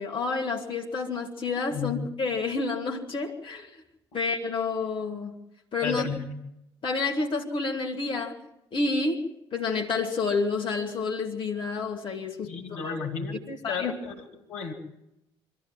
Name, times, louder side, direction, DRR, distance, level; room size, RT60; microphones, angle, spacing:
voice 1, 0.0-3.8 4.1-5.3 5.7-6.1 6.8-8.4 8.7-13.0 13.6-13.9, left 4 dB, 40° left, 0 dB, 2.4 m, -29 dB
voice 2, 5.8-6.3 12.4-14.2 14.5-14.7, left 5 dB, 60° left, 3 dB, 2.8 m, -33 dB
25.0 x 14.0 x 7.6 m, 0.86 s
figure-of-eight pair, 50°, 13 cm